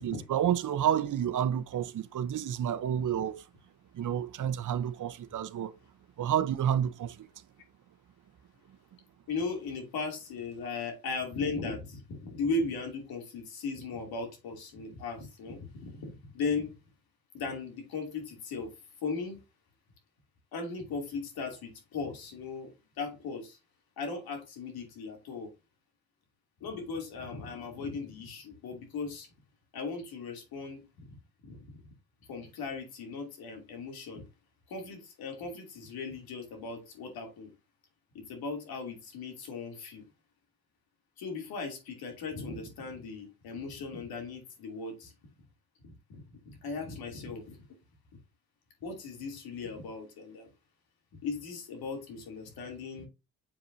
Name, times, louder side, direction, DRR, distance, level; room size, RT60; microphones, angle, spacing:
voice 1, 0.0-3.4 3.9-5.7 6.2-7.3, right 10 dB, 55° right, 0.9 m, -30 dB
voice 2, 9.3-16.8 17.3-19.4 20.5-23.6 24.0-25.5 26.6-29.3 29.7-31.2 31.4-31.8 32.3-34.3 34.7-37.5 38.1-40.1 41.2-45.1 45.8-47.6 48.8-50.5 51.2-53.1, left 4 dB, 85° left, 2.8 m, -37 dB
7.2 x 5.1 x 2.7 m
cardioid pair, 80°, 36 cm